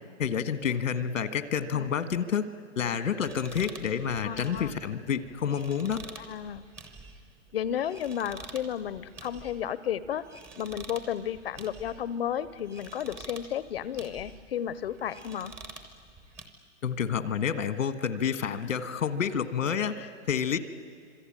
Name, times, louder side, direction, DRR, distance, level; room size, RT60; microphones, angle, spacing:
voice 1, 0.2-2.4 2.7-6.0 16.8-20.6, left 7 dB, 80° left, 11 dB, 1.7 m, -29 dB
sound 1, 3.2-16.5, right 3 dB, 5° right, 0.6 m, -48 dB
voice 2, 4.2-4.7 6.2-6.6 7.5-10.2 10.6-15.5, left 9 dB, 50° left, 17 dB, 0.7 m, -33 dB
26.5 x 22.5 x 8.9 m, 2.1 s
hypercardioid pair, 160°, 38 cm